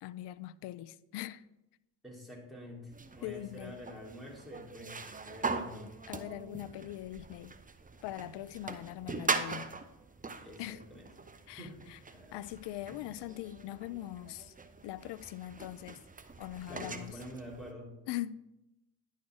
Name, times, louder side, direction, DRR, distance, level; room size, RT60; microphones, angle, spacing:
voice 1, 0.0-1.4 3.2-3.8 6.1-7.5 8.0-9.7 10.6-10.8 11.5-12.0 12.3-14.5 14.8-16.0 16.4-17.2 18.1-18.4, left 14 dB, 65° left, 0.5 m, -41 dB
voice 2, 2.0-5.9 8.2-8.3 10.4-11.1 11.5-11.8 12.1-12.5 12.9-13.0 16.7-17.9, equal, ahead, 3.4 m, -47 dB
sound 1, 2.9-17.7, right 4 dB, 20° right, 0.7 m, -41 dB
10.5 x 4.3 x 4.8 m
hypercardioid pair, 45°, 44 cm